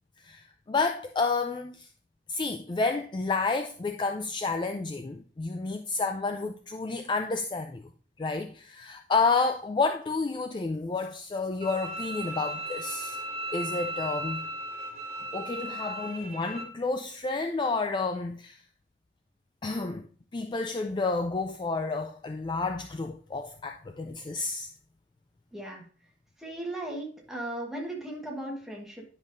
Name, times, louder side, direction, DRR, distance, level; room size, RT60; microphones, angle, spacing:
voice 1, 0.2-1.9 2.3-7.8 8.2-13.2 13.5-14.4 15.3-18.6 19.6-20.1 20.3-24.7, left 3 dB, 25° left, 0.3 m, -30 dB
Bowed string instrument, 11.6-16.6, right 1 dB, 35° right, 1.8 m, -36 dB
voice 2, 25.5-25.9 26.4-29.0, right 1 dB, ahead, 1.4 m, -37 dB
10.0 x 5.4 x 2.6 m
head